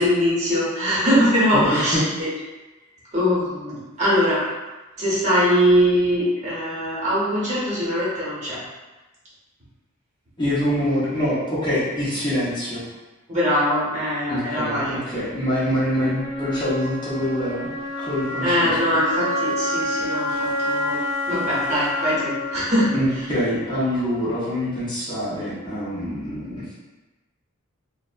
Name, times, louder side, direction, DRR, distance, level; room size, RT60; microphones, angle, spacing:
voice 1, 0.0-2.3 3.1-4.4 5.0-8.6 13.3-15.0 18.4-22.9, equal, 35° right, -9 dB, 0.9 m, -22 dB
voice 2, 1.5-2.1 10.4-12.8 14.3-17.7 18.0-18.7 22.9-26.7, equal, 20° left, -10 dB, 0.6 m, -25 dB
Wind instrument woodwind instrument, 15.8-23.8, left 1 dB, 70° right, 0.5 m, -28 dB
2.5 x 2.0 x 2.4 m, 1.1 s
head